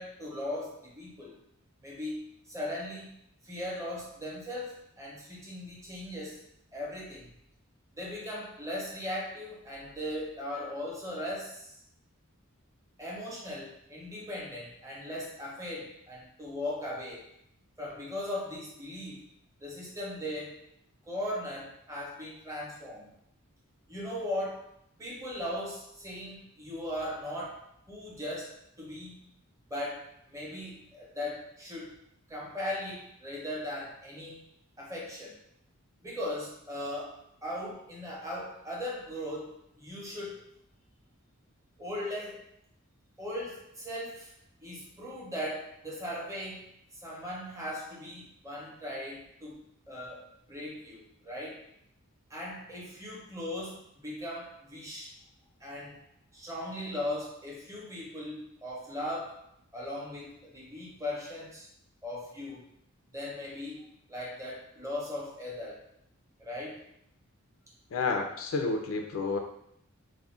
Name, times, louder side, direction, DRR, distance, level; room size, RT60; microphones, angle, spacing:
voice 1, 0.0-1.4 1.8-3.2 3.4-6.4 6.7-7.3 7.9-11.7 13.0-17.2 17.8-19.3 19.6-20.6 21.0-23.1 23.9-24.7 25.0-29.3 29.7-31.9 32.3-34.4 34.8-35.4 36.0-40.4 41.8-42.4 43.2-44.3 44.6-46.7 47.0-49.6 49.9-51.7 52.3-55.1 55.6-56.0 56.3-59.4 59.7-61.7 62.0-62.6 63.1-65.8 66.4-66.9, left 1 dB, 15° right, -4 dB, 0.7 m, -38 dB
voice 2, 67.9-69.4, left 4 dB, 65° left, 4 dB, 0.4 m, -30 dB
2.4 x 2.1 x 3.6 m, 0.73 s
head